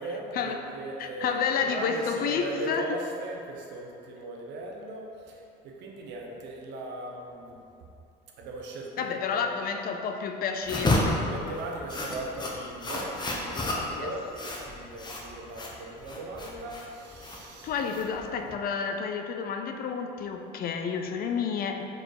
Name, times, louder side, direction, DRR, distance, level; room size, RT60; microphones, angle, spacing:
voice 1, 0.0-7.6 8.4-9.6 11.2-17.7, right 1 dB, 70° right, 0 dB, 1.0 m, -38 dB
voice 2, 1.0-2.9 9.0-11.5 13.9-14.1 17.6-21.8, left 6 dB, 50° left, 6 dB, 0.6 m, -30 dB
sound 1, 10.6-18.5, left 1 dB, 25° left, 1.1 m, -31 dB
4.8 x 4.5 x 4.8 m, 2.8 s
supercardioid pair, 90°, 19 cm